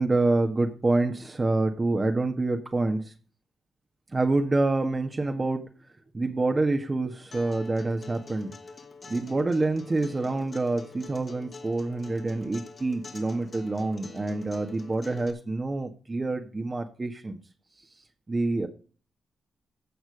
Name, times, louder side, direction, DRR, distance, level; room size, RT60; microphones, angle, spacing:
voice 1, 0.0-3.0 4.1-5.6 6.1-8.5 9.1-17.4 18.3-18.7, right 2 dB, 30° right, 1.7 m, -27 dB
Acoustic guitar, 7.3-15.3, left 3 dB, 45° left, 2.8 m, -46 dB
15.5 x 6.1 x 4.9 m
cardioid pair, 70°, 0 cm